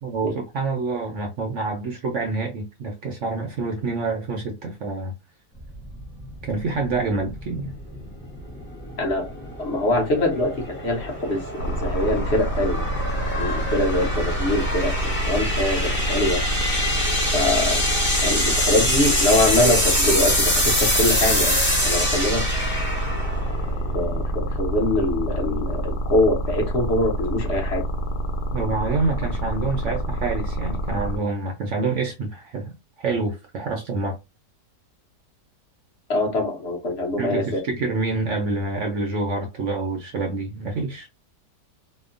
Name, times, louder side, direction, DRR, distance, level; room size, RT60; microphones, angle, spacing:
voice 1, 0.0-5.1 6.4-7.7 28.5-34.2 37.2-41.1, right 3 dB, 70° right, 0.7 m, -27 dB
sound 1, 5.6-24.7, left 1 dB, 20° left, 0.3 m, -25 dB
voice 2, 9.0-9.3 9.6-12.9 13.4-16.4 17.3-17.8 18.2-21.6 21.8-22.5 23.9-27.9 36.1-37.6, left 2 dB, 50° left, 0.8 m, -23 dB
sound 2, 11.6-31.2, right 1 dB, 75° left, 1.1 m, -27 dB
2.8 x 2.1 x 2.4 m
omnidirectional pair, 1.8 m